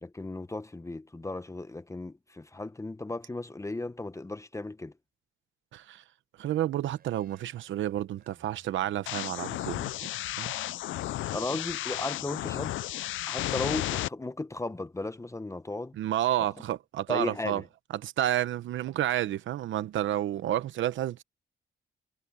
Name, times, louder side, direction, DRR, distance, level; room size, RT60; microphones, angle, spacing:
voice 1, 0.0-4.9 11.3-12.8 13.3-15.9 17.1-17.6, left 2 dB, 15° left, 1.0 m, -35 dB
voice 2, 5.7-6.0 6.4-9.8 10.4-10.5 16.0-17.6 17.9-21.2, right 12 dB, 85° right, 0.9 m, -30 dB
sound 1, 6.9-13.7, right 6 dB, 50° right, 6.0 m, -61 dB
sound 2, 9.1-14.1, left 15 dB, 90° left, 0.5 m, -33 dB
cardioid pair, 90°, 19 cm